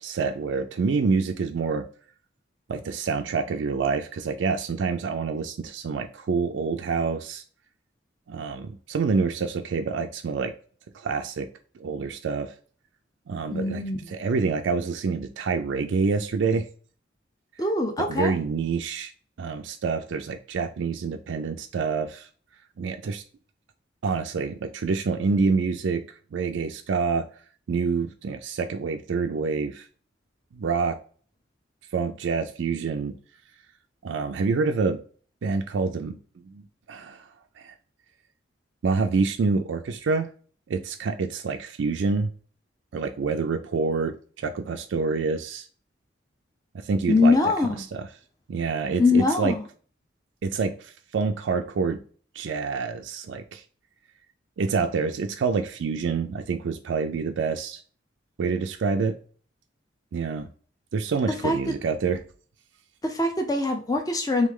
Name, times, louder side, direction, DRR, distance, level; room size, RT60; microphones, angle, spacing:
voice 1, 0.0-1.9 2.7-7.4 8.3-10.5 10.9-11.5 11.8-12.5 13.3-13.8 14.1-16.7 18.0-19.1 19.4-22.3 22.8-23.2 24.0-26.0 26.3-27.2 27.7-29.9 30.5-31.0 31.9-33.1 34.0-35.0 35.4-36.2 36.5-37.3 37.6-37.7 38.8-40.3 40.7-42.3 42.9-45.7 46.7-47.5 47.9-48.1 48.5-49.5 50.4-52.0 52.3-53.6 54.6-57.8 58.4-59.2 60.1-60.5 60.9-62.2, right 4 dB, 70° right, 5 dB, 0.4 m, -27 dB
voice 2, 13.5-14.0 17.6-18.3 47.1-47.8 49.0-49.6 61.4-61.7 63.0-64.5, left 3 dB, 20° left, 4 dB, 0.6 m, -22 dB
3.6 x 3.1 x 3.6 m, 0.42 s
head